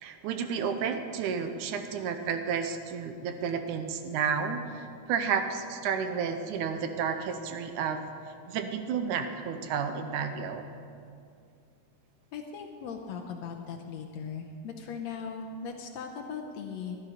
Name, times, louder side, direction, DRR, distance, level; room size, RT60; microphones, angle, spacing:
voice 1, 0.0-8.0 8.5-10.6, right 6 dB, 75° right, 7 dB, 2.0 m, -31 dB
voice 2, 12.3-17.0, left 6 dB, 80° left, 3 dB, 1.6 m, -39 dB
15.0 x 11.5 x 5.0 m, 2.4 s
omnidirectional pair, 3.9 m